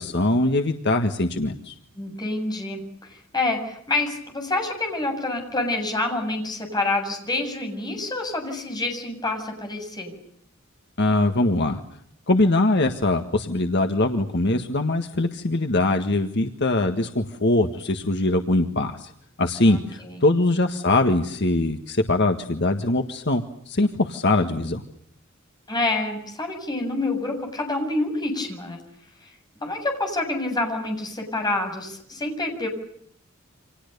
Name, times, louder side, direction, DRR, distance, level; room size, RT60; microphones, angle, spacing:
voice 1, 0.0-1.7 11.0-11.8 12.3-19.1 19.4-24.8, left 2 dB, 55° left, 6 dB, 1.7 m, -22 dB
voice 2, 2.0-2.8 3.1-10.2 19.7-20.3 25.7-28.8 29.6-32.7, left 2 dB, 20° left, 3 dB, 7.8 m, -27 dB
29.5 x 27.0 x 6.9 m, 0.69 s
head